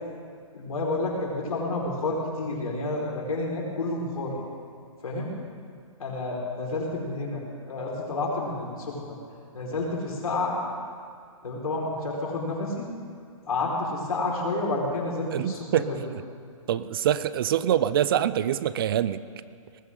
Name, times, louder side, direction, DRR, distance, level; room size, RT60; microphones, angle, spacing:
voice 1, 0.5-4.3 5.0-5.3 6.0-7.4 7.7-9.2 9.5-10.6 11.4-12.9 13.5-16.0, left 2 dB, 90° left, -3 dB, 5.0 m, -30 dB
voice 2, 15.3-16.2 16.7-19.2, right 10 dB, 40° right, 15 dB, 0.5 m, -25 dB
19.5 x 16.0 x 3.9 m, 2.2 s
hypercardioid pair, 155°, 18 cm